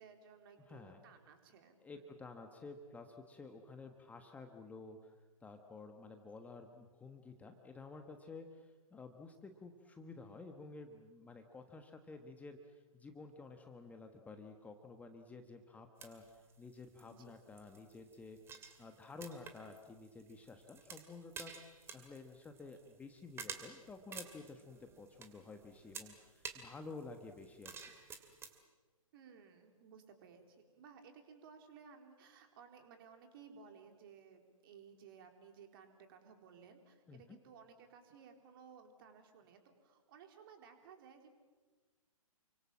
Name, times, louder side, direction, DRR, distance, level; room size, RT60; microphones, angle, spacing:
voice 1, 0.0-2.1 17.1-17.3 29.1-41.4, right 6 dB, 40° right, 5 dB, 4.0 m, -58 dB
voice 2, 0.7-1.0 1.8-5.1 5.4-27.9 37.1-37.4, left 3 dB, 10° left, 5 dB, 1.4 m, -52 dB
sound 1, 16.0-28.6, right 6 dB, 15° right, 2.5 m, -52 dB
29.5 x 24.5 x 7.5 m, 1.3 s
figure-of-eight pair, 125°, 18 cm